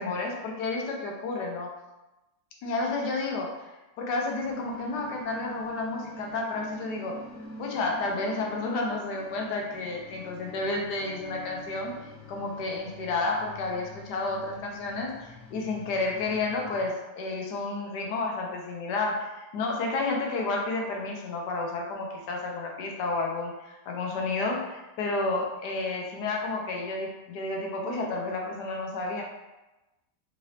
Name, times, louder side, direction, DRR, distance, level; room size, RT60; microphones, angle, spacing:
voice 1, 0.0-1.7 2.6-3.7 4.0-7.2 7.6-11.9 12.3-29.2, left 3 dB, 80° left, 0 dB, 1.3 m, -31 dB
sound 1, 4.4-16.9, left 1 dB, 10° left, 0.9 m, -46 dB
3.8 x 2.7 x 3.1 m, 1.0 s
omnidirectional pair, 1.8 m